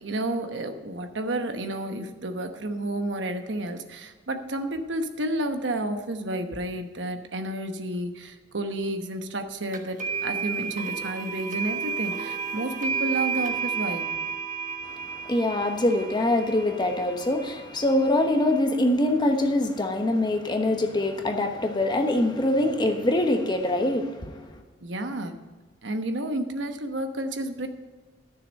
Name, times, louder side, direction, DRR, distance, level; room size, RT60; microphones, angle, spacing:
voice 1, 0.0-14.1 24.8-25.3 25.8-27.7, right 1 dB, 80° right, 1.1 m, -31 dB
sound 1, 9.7-18.6, right 6 dB, 45° right, 1.2 m, -32 dB
voice 2, 14.9-24.6, left 1 dB, 25° left, 1.1 m, -24 dB
12.5 x 6.8 x 5.3 m
head